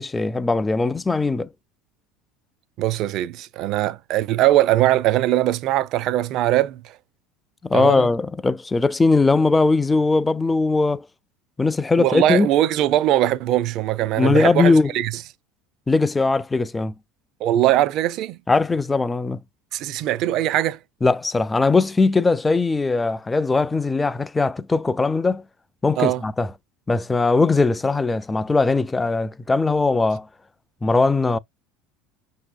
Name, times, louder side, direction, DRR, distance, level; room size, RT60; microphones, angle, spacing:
voice 1, 0.0-1.5 7.6-11.0 11.6-12.5 14.2-14.9 15.9-16.9 18.5-19.4 21.0-25.4 25.8-26.5 26.9-30.3 30.8-31.4, left 3 dB, 15° left, 0.4 m, -20 dB
voice 2, 2.8-7.0 7.7-8.1 12.0-15.1 17.4-18.4 19.7-20.8 26.0-26.2, right 14 dB, 55° right, 0.4 m, -21 dB
5.8 x 2.8 x 2.4 m
hypercardioid pair, 75°, 0 cm